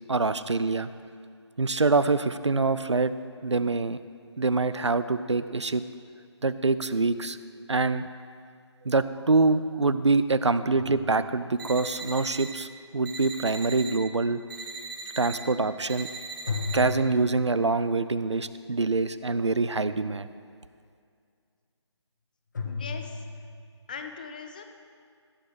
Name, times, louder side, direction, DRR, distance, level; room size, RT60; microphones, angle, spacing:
voice 1, 0.1-0.9 1.6-3.1 3.4-4.0 4.4-5.8 6.4-7.4 7.7-8.0 8.8-14.4 15.2-16.1 16.7-20.3, right 3 dB, 75° right, 14 dB, 0.5 m, -25 dB
sound 1, 10.7-11.9 16.5-18.0 22.5-23.7, left 4 dB, 40° left, 1.2 m, -35 dB
sound 2, 11.6-12.5 13.0-13.9 14.5-15.4 15.9-16.7, right 4 dB, 45° right, 3.0 m, -39 dB
voice 2, 22.6-23.2 23.9-24.6, left 5 dB, 15° left, 6 dB, 0.5 m, -40 dB
16.0 x 7.3 x 4.7 m, 2.3 s
figure-of-eight pair, 150°, 15 cm